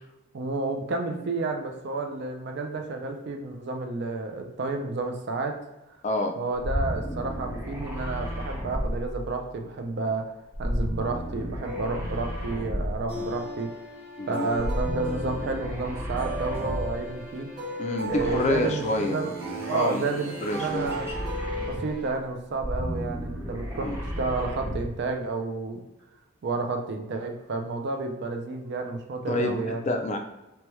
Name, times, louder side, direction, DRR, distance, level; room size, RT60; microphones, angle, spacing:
voice 1, 0.3-5.6 6.4-10.3 10.6-13.7 14.3-17.5 18.1-19.3 19.6-21.1 21.7-23.9 24.2-25.8 26.4-29.8, right 3 dB, 60° right, 3 dB, 0.4 m, -31 dB
voice 2, 6.0-6.4 14.2-14.6 17.8-20.1 20.4-20.9 23.8-24.0 29.3-30.2, left 2 dB, 35° left, 4 dB, 0.3 m, -28 dB
sound 1, 6.6-9.6 10.5-13.2 14.5-17.1 18.1-22.1 22.5-25.0, equal, 10° right, 0.6 m, -33 dB
sound 2, 11.6-22.1, equal, 30° right, 1.2 m, -37 dB
3.0 x 2.2 x 3.0 m, 0.99 s
head